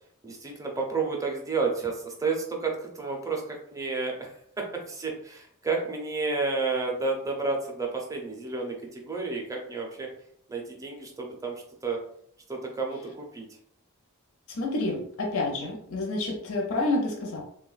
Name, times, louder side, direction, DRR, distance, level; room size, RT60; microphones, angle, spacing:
voice 1, 0.2-10.1 10.5-11.5 11.8-12.0 12.5-13.5 15.6-15.7, right 4 dB, 15° right, 0 dB, 0.5 m, -31 dB
voice 2, 14.5-17.4, left 2 dB, 70° left, 0 dB, 0.6 m, -29 dB
3.3 x 2.2 x 2.3 m, 0.67 s
head